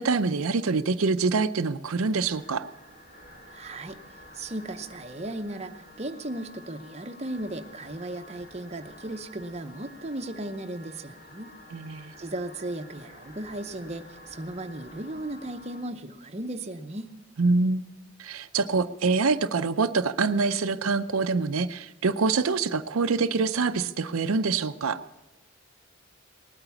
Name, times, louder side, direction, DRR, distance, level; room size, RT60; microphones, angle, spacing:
voice 1, 0.0-2.7 11.7-12.1 17.4-17.8 18.2-25.0, right 4 dB, 80° right, 9 dB, 0.6 m, -25 dB
sound 1, 2.1-15.9, left 1 dB, 45° left, 2.7 m, -50 dB
voice 2, 3.5-4.0 4.3-11.5 12.2-17.1, right 1 dB, 30° right, 6 dB, 0.8 m, -36 dB
19.0 x 8.9 x 7.0 m, 0.98 s
head